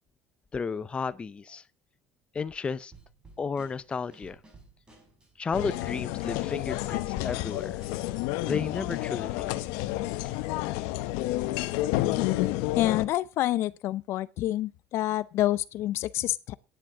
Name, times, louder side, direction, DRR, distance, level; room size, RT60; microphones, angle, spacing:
voice 1, 0.5-1.6 2.3-2.9 3.4-4.4 5.4-7.8 8.4-9.5, left 5 dB, 20° left, 0.7 m, -33 dB
Drum kit / Snare drum, 2.9-8.1, right 3 dB, 20° right, 5.0 m, -54 dB
sound 1, 5.5-13.1, left 17 dB, 85° left, 0.9 m, -30 dB
voice 2, 12.8-16.5, left 14 dB, 60° left, 0.5 m, -28 dB
10.5 x 10.0 x 5.0 m
cardioid pair, 130°, 5 cm